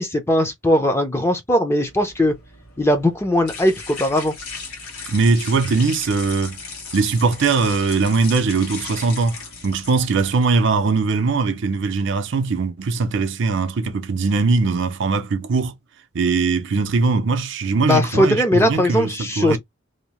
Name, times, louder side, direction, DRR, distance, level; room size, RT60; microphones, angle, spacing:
voice 1, 0.0-2.4 2.8-4.3 17.9-19.6, left 1 dB, 10° left, 0.5 m, -19 dB
sound 1, 1.9-10.4, left 4 dB, 90° left, 1.2 m, -36 dB
voice 2, 5.1-6.6 6.9-9.4 9.6-15.7 16.1-19.6, right 4 dB, 55° right, 0.5 m, -20 dB
2.7 x 2.1 x 3.0 m
head